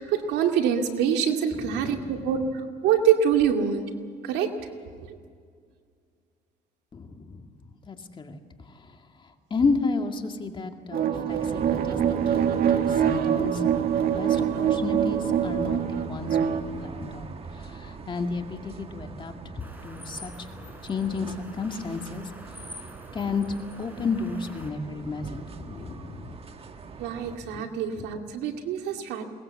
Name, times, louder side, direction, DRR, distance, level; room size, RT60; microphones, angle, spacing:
voice 1, 0.0-3.8 4.2-4.5 27.0-29.2, right 8 dB, 85° right, 3 dB, 2.4 m, -25 dB
voice 2, 1.5-2.3 6.9-8.4 8.7-9.0 9.2-13.7 14.2-22.3 23.1-23.4 23.8-26.4 27.4-27.6 28.0-28.1, left 4 dB, 30° left, 4 dB, 2.1 m, -32 dB
sound 1, 10.9-16.6, right 9 dB, 60° right, 1.7 m, -24 dB
sound 2, 11.3-27.4, right 4 dB, 35° right, 1.5 m, -41 dB
sound 3, 19.6-24.7, left 1 dB, 10° right, 3.8 m, -46 dB
22.0 x 19.5 x 7.7 m, 2.1 s
cardioid pair, 110°, 17 cm